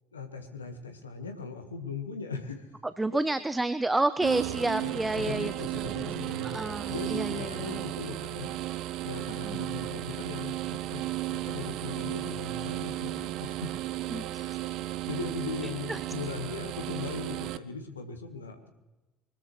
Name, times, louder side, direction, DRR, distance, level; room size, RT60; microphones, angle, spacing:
voice 1, 0.1-2.7 4.5-6.6 6.9-8.5 9.0-11.0 11.3-13.7 14.3-14.5 15.1-18.7, left 4 dB, 80° left, 6 dB, 1.5 m, -39 dB
voice 2, 3.0-5.5 5.8-6.2 6.4-7.8 9.4-9.7 14.1-14.6 15.9-16.0, right 2 dB, 10° right, 14 dB, 0.5 m, -30 dB
sound 1, 4.2-17.6, right 15 dB, 55° right, 0.6 m, -34 dB
23.5 x 13.5 x 3.2 m, 1.1 s
figure-of-eight pair, 60°, 0 cm